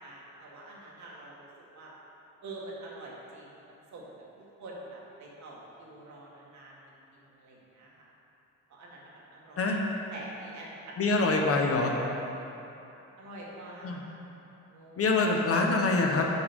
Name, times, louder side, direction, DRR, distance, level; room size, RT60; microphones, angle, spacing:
voice 1, 0.0-1.5 1.7-1.9 2.4-3.6 3.9-4.1 4.4-6.8 7.1-8.1 8.7-9.7 10.1-11.4 11.8-11.9 13.2-14.2 14.7-15.2, right 2 dB, 70° right, -4 dB, 1.9 m, -46 dB
voice 2, 11.0-12.0 13.8-14.0 15.0-16.3, left 3 dB, 50° left, 1 dB, 1.1 m, -25 dB
6.8 x 6.2 x 5.3 m, 2.9 s
cardioid pair, 90°, 30 cm